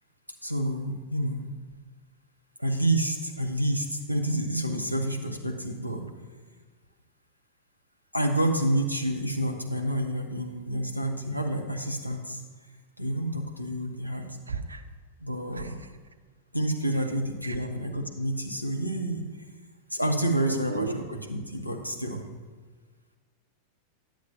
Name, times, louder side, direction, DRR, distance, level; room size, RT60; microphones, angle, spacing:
voice 1, 0.4-1.5 2.6-6.1 8.1-12.4 13.0-14.3 15.2-15.8 16.5-19.3 19.9-22.3, right 1 dB, 90° left, 3 dB, 0.8 m, -29 dB
voice 2, 14.5-14.8 15.5-15.7 17.4-17.7 20.5-21.0, right 4 dB, 80° right, 10 dB, 0.4 m, -35 dB
10.0 x 7.5 x 2.9 m, 1.4 s
figure-of-eight pair, 90°, 0 cm